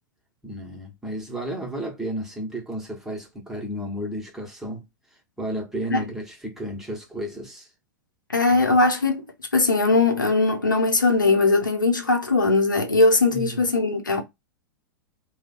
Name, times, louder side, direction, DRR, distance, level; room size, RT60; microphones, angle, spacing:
voice 1, 0.4-4.8 5.4-7.7 8.5-8.8 13.3-13.6, equal, 5° right, 1.2 m, -32 dB
voice 2, 8.3-9.2 9.5-14.2, left 3 dB, 85° left, 0.7 m, -20 dB
2.9 x 2.3 x 4.2 m
figure-of-eight pair, 95°, 10 cm